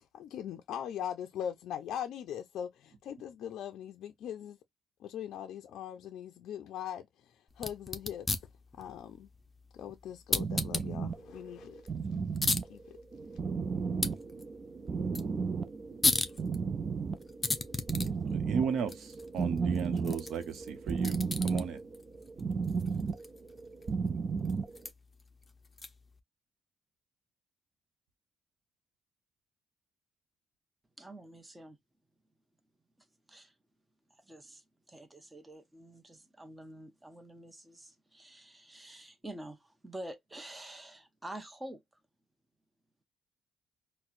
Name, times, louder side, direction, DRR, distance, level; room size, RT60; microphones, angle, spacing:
voice 1, 0.0-4.6 5.0-8.3 8.8-9.3 9.7-11.8 12.2-12.3 12.7-13.0, left 9 dB, 80° left, 0.4 m, -41 dB
sound 1, 7.5-26.2, left 3 dB, 25° left, 0.6 m, -38 dB
sound 2, 10.4-24.8, right 5 dB, 40° right, 0.4 m, -34 dB
voice 2, 18.2-21.8, right 6 dB, 70° right, 0.8 m, -35 dB
voice 3, 31.0-31.8 33.3-33.5 34.2-41.8, right 1 dB, 15° right, 0.8 m, -47 dB
4.2 x 2.1 x 2.5 m
cardioid pair, 90°, 0 cm